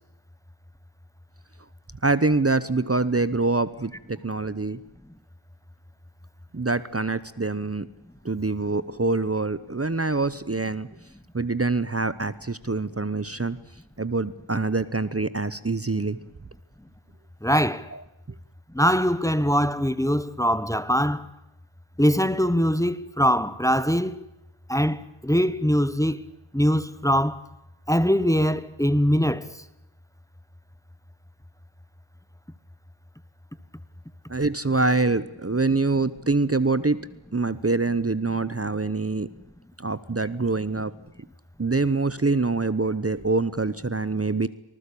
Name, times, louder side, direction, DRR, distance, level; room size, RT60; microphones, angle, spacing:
voice 1, 2.0-4.8 6.5-7.9 8.2-10.9 11.3-13.6 14.0-16.2 17.9-18.0 34.3-37.1 37.3-39.3 39.8-40.9 41.6-44.5, right 3 dB, 30° right, 0.9 m, -25 dB
voice 2, 17.4-17.9 18.7-21.3 22.0-24.2 24.7-26.2 26.5-27.4 27.9-29.5, equal, 5° left, 1.1 m, -22 dB
26.0 x 19.5 x 8.6 m
wide cardioid pair, 55°, 48 cm